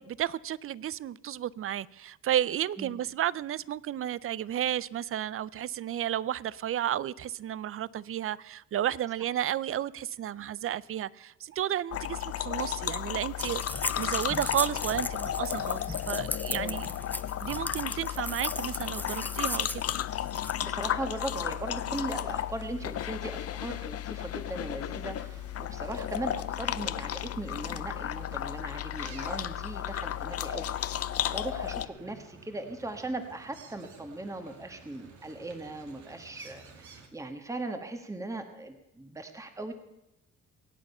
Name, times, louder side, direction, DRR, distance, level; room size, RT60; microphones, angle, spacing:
voice 1, 0.0-13.6 14.0-16.9 17.4-19.8, right 11 dB, 45° right, 0.5 m, -32 dB
sound 1, 11.9-31.9, left 11 dB, 50° left, 0.6 m, -34 dB
sound 2, 13.4-20.6, left 1 dB, 5° left, 0.6 m, -37 dB
voice 2, 16.5-16.8 20.6-39.7, right 2 dB, 10° right, 1.4 m, -39 dB
sound 3, 20.6-37.1, right 5 dB, 70° right, 2.1 m, -54 dB
23.0 x 8.9 x 5.5 m
cardioid pair, 90°, 30 cm